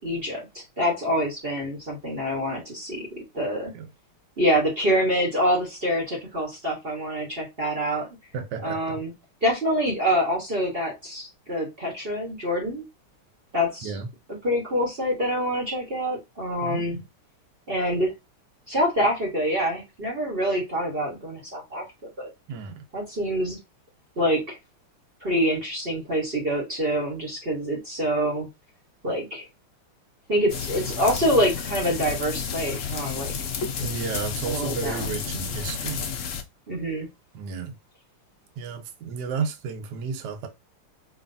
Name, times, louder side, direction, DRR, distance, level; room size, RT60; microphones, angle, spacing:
voice 1, 0.0-3.7 4.4-8.1 8.6-9.1 9.4-12.8 13.5-14.0 14.4-17.0 17.7-18.1 18.7-21.8 22.2-22.3 22.9-23.6 24.2-24.6 25.2-28.5 29.0-29.5 30.3-33.3 34.5-35.0 36.7-37.1, equal, 35° right, 1.2 m, -26 dB
voice 2, 8.3-9.0 13.8-14.1 16.6-17.0 22.5-22.8 33.8-36.1 37.3-37.8 38.6-40.5, right 6 dB, 60° right, 1.3 m, -32 dB
sound 1, 30.5-36.4, left 6 dB, 90° left, 0.6 m, -31 dB
4.8 x 3.1 x 2.6 m
omnidirectional pair, 2.3 m